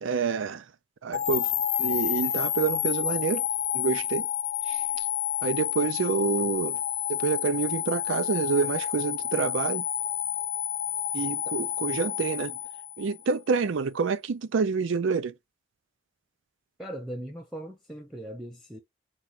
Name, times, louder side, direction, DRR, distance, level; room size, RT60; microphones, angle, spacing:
voice 1, 0.0-0.6 1.0-1.5 1.8-3.4 3.7-4.3 4.7-4.8 5.4-6.8 7.1-9.8 11.1-12.6 13.0-15.3, right 5 dB, 90° right, 0.5 m, -27 dB
sound 1, 1.1-13.3, left 11 dB, 65° left, 0.5 m, -30 dB
voice 2, 16.8-18.8, right 1 dB, ahead, 0.7 m, -39 dB
4.6 x 2.5 x 4.1 m
head